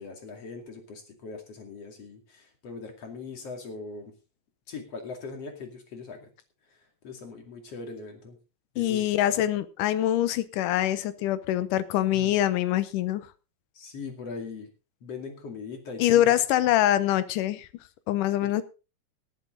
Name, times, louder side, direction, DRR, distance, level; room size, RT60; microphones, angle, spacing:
voice 1, 0.0-4.1 4.7-6.3 7.0-8.4 8.8-9.4 12.1-12.3 13.8-14.7 15.0-16.4 18.4-18.5, left 4 dB, 50° left, 4 dB, 3.4 m, -40 dB
voice 2, 8.8-13.3 16.0-17.7 18.1-18.6, left 12 dB, 85° left, 14 dB, 2.5 m, -24 dB
18.5 x 8.9 x 3.8 m, 0.32 s
omnidirectional pair, 3.6 m